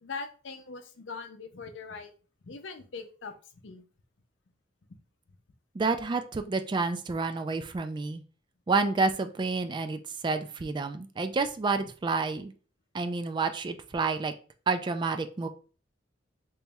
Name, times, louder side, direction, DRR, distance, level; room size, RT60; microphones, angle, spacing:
voice 1, 0.0-2.1 2.4-3.3 3.6-3.8 11.8-11.9, left 4 dB, 75° left, 6 dB, 0.6 m, -41 dB
voice 2, 5.7-8.2 8.7-12.5 12.9-14.3 14.7-15.5, right 4 dB, 25° right, 8 dB, 0.3 m, -29 dB
3.0 x 3.0 x 3.4 m, 0.37 s
head